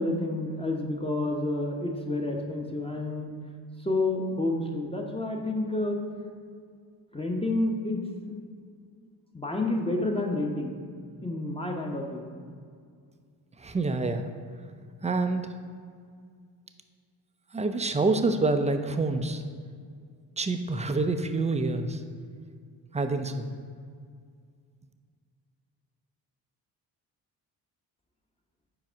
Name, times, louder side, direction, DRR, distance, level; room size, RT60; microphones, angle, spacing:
voice 1, 0.0-3.3 3.8-6.0 7.1-8.3 9.3-10.8 11.2-12.3, left 2 dB, 10° left, 0 dB, 0.8 m, -29 dB
voice 2, 13.6-14.2 15.0-15.5 17.5-19.4 20.4-22.0 22.9-23.6, right 3 dB, 15° right, 7 dB, 0.4 m, -27 dB
4.8 x 4.8 x 4.5 m, 2.1 s
supercardioid pair, 50°, 48 cm